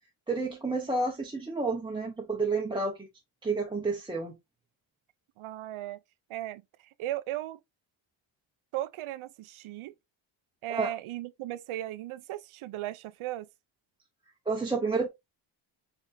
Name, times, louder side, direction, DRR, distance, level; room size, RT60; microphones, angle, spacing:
voice 1, 0.3-3.1 3.4-4.3 10.7-10.9 14.5-15.1, right 3 dB, 10° right, 0.7 m, -30 dB
voice 2, 5.4-6.0 6.3-6.6 7.0-7.6 8.7-9.9 10.6-13.5, right 14 dB, 85° right, 0.6 m, -36 dB
5.1 x 3.5 x 2.6 m
wide cardioid pair, 145°, 48 cm